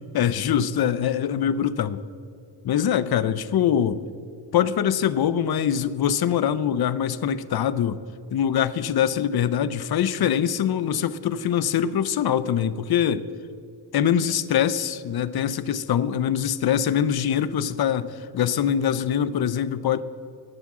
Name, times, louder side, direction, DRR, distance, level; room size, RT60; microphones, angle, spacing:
voice 1, 0.1-2.0 2.6-4.0 4.5-8.0 8.3-13.3 13.9-20.0, left 9 dB, 65° left, 15 dB, 0.6 m, -23 dB
19.0 x 7.3 x 3.7 m, 2.5 s
cardioid pair, 65°, 40 cm